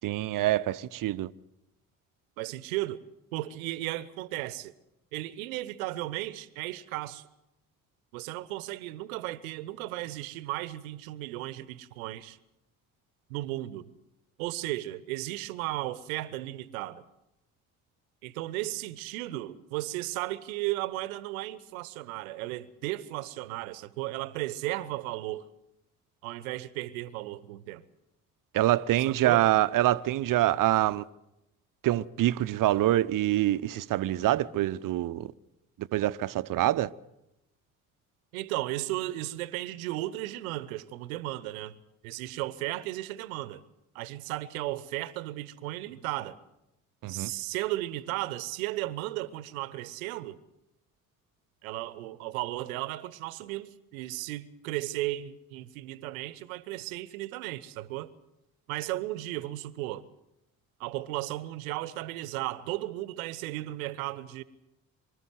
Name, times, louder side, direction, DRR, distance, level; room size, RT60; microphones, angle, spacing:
voice 1, 0.0-1.3 28.5-31.0 31.8-35.3 35.8-36.9 47.0-47.3, right 14 dB, 50° right, 0.8 m, -25 dB
voice 2, 2.4-3.0 3.3-4.7 5.1-7.3 8.1-12.4 13.3-13.9 14.4-17.0 18.2-25.5 26.2-27.8 29.0-29.5 38.3-41.8 42.0-43.6 43.9-46.4 47.1-50.4 51.6-58.1 58.7-60.1 60.8-64.4, right 17 dB, 75° right, 1.0 m, -35 dB
25.5 x 13.0 x 9.3 m
hypercardioid pair, 50°, 43 cm